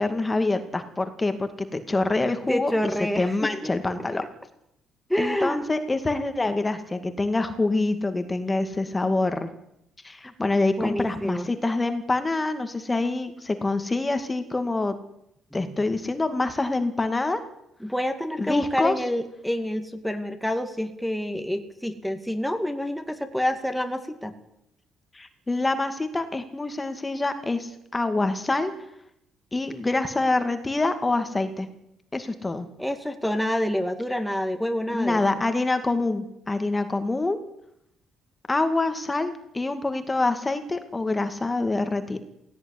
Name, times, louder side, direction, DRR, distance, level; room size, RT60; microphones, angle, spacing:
voice 1, 0.0-2.9 3.2-4.2 5.2-9.5 10.0-14.9 15.5-17.4 18.4-19.0 25.1-28.7 29.5-31.7 32.1-32.7 34.9-37.4 38.5-42.2, left 2 dB, 20° left, 9 dB, 2.3 m, -26 dB
voice 2, 2.5-3.7 5.1-5.7 10.2-10.3 10.8-11.5 15.5-15.7 17.8-24.3 32.8-35.2, left 1 dB, ahead, 6 dB, 2.3 m, -28 dB
17.0 x 16.5 x 9.9 m, 0.78 s
cardioid pair, 90°, 0 cm